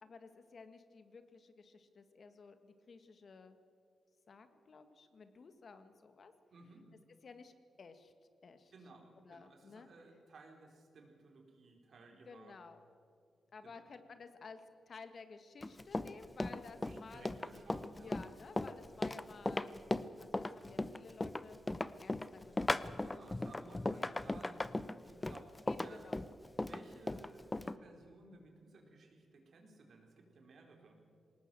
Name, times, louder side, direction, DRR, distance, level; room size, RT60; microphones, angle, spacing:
voice 1, 0.0-3.6 4.3-6.3 7.2-8.1 8.4-8.7 9.2-9.9 12.3-12.8 13.5-17.4 18.0-19.8 20.2-21.6 22.0-23.2 23.9-24.2 25.7-26.3, left 4 dB, 60° left, 9 dB, 1.7 m, -55 dB
voice 2, 6.5-6.8 8.7-12.5 13.6-13.8 16.8-18.2 23.0-24.6 25.0-26.1 26.6-31.0, right 2 dB, 70° right, 2 dB, 4.3 m, -58 dB
Run, 15.6-27.8, left 2 dB, 20° left, 0.8 m, -37 dB
20.5 x 18.5 x 7.8 m, 2.3 s
cardioid pair, 70°, 0 cm